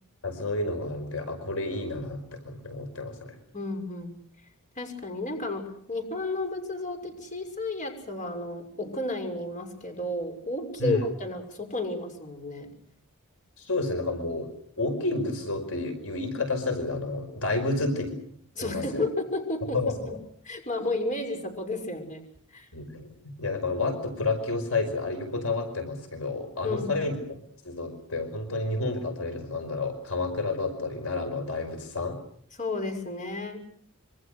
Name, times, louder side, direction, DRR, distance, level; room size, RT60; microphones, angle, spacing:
voice 1, 0.2-3.3 10.8-11.0 13.6-14.5 14.8-18.2 18.6-19.0 19.7-20.2 22.7-23.1 23.4-27.4 27.6-32.2, left 2 dB, 70° left, 7 dB, 5.0 m, -30 dB
voice 2, 3.5-4.1 4.8-12.7 18.5-20.1 20.4-22.2 22.5-22.7 26.6-27.0 32.6-33.6, left 2 dB, 35° left, 5 dB, 6.2 m, -32 dB
27.0 x 25.0 x 6.5 m, 0.64 s
head